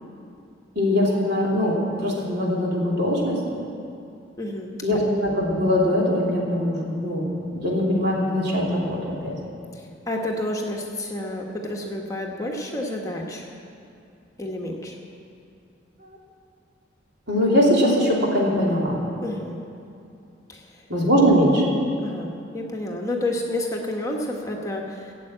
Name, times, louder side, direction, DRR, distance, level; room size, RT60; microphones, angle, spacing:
voice 1, 0.7-3.4 4.8-9.4 16.0-16.2 17.3-19.0 20.9-21.6, equal, 60° right, -4 dB, 3.0 m, -21 dB
voice 2, 4.4-5.0 9.7-13.5 14.4-15.0 19.2-19.6 20.5-20.8 22.0-25.1, left 1 dB, 15° left, 0 dB, 1.2 m, -30 dB
16.5 x 7.6 x 8.9 m, 2.6 s
head